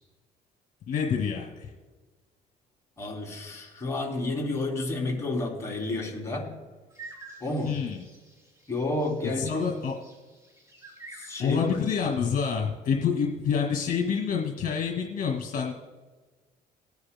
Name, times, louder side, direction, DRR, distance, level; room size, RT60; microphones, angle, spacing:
voice 1, 0.9-1.7 7.7-8.0 9.2-10.0 11.4-15.7, left 6 dB, 55° left, 0 dB, 2.1 m, -27 dB
voice 2, 3.0-6.5 7.4-7.7 8.7-9.6 11.1-11.7 12.0-12.2, left 2 dB, 15° left, -2 dB, 3.1 m, -30 dB
sound 1, 6.9-12.3, right 3 dB, 20° right, 3.5 m, -50 dB
20.0 x 9.7 x 2.2 m, 1.3 s
cardioid pair, 110°, 17 cm